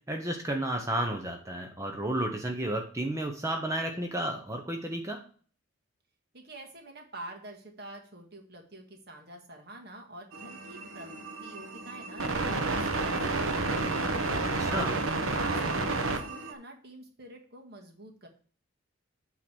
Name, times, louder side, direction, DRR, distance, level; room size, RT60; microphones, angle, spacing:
voice 1, 0.1-5.2 14.7-15.0, right 1 dB, 15° right, 3 dB, 0.9 m, -32 dB
voice 2, 6.3-11.2 11.4-14.1 14.5-18.3, right 1 dB, 50° right, 2 dB, 1.9 m, -46 dB
sound 1, 10.3-16.5, right 3 dB, 85° right, 1.2 m, -31 dB
9.0 x 3.9 x 6.1 m, 0.43 s
head